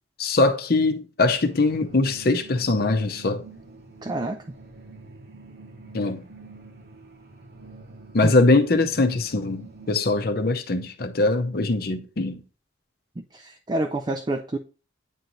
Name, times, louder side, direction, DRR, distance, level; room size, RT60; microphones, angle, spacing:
voice 1, 0.2-3.4 5.9-6.2 8.1-12.4, left 2 dB, 55° left, 0.7 m, -22 dB
sound 1, 1.4-10.0, right 3 dB, 55° right, 1.0 m, -46 dB
voice 2, 4.0-4.4 8.2-8.4 13.2-14.6, right 2 dB, 25° right, 0.4 m, -28 dB
9.1 x 3.0 x 3.9 m
head